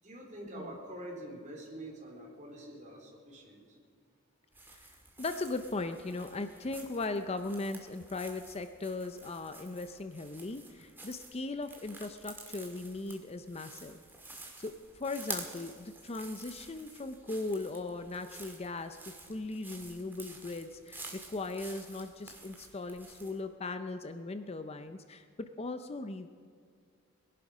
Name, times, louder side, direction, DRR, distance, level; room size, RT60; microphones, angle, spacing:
voice 1, 0.0-3.6, right 1 dB, 35° right, -1 dB, 3.6 m, -46 dB
sound 1, 4.5-23.4, right 2 dB, 10° right, 1.9 m, -49 dB
voice 2, 5.2-14.0 14.6-26.3, left 2 dB, 30° left, 9 dB, 0.6 m, -38 dB
21.0 x 11.5 x 5.0 m, 2.2 s
head